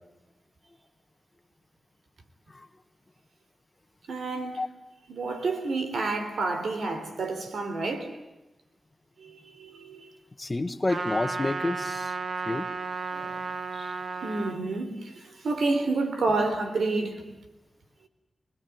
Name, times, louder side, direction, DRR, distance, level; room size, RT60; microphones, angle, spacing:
voice 1, 4.1-4.7 5.1-8.1 9.2-10.1 13.1-13.4 14.2-17.2, right 3 dB, 85° right, 3.7 m, -29 dB
voice 2, 10.4-12.1 12.5-12.6 13.7-13.9, left 2 dB, 30° left, 1.6 m, -29 dB
Trumpet, 10.9-14.6, right 4 dB, 65° right, 1.8 m, -33 dB
25.5 x 19.5 x 9.5 m
cardioid pair, 60°, 0 cm